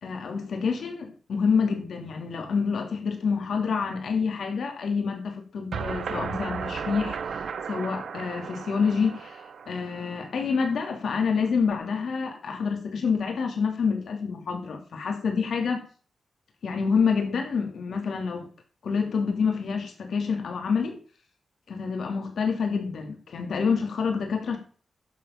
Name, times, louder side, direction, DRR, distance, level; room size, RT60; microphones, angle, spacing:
voice 1, 0.0-15.8 16.6-18.5 18.8-21.0 21.7-24.6, left 5 dB, 80° left, 2.8 m, -27 dB
sound 1, 5.7-10.6, right 6 dB, 75° right, 1.0 m, -35 dB
11.0 x 7.7 x 5.9 m
wide cardioid pair, 180°, 0 cm